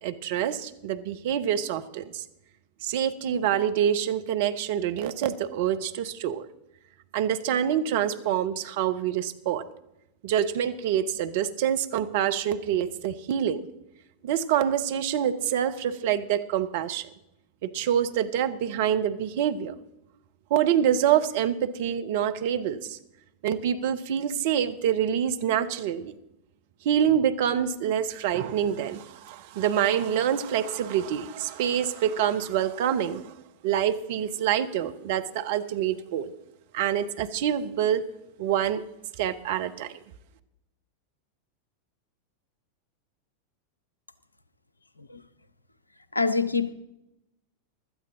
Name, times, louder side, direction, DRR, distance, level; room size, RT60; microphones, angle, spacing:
voice 1, 0.0-2.2 2.8-6.5 7.1-9.6 10.2-13.7 14.2-17.1 17.6-19.7 20.5-23.0 23.4-26.2 26.8-33.3 33.6-36.3 36.7-38.0 38.4-38.8 39.2-39.9, right 9 dB, 50° right, 10 dB, 0.9 m, -26 dB
voice 2, 46.1-46.7, left 4 dB, 80° left, 15 dB, 0.7 m, -25 dB
16.5 x 12.5 x 3.8 m, 0.90 s
figure-of-eight pair, 90°, 0 cm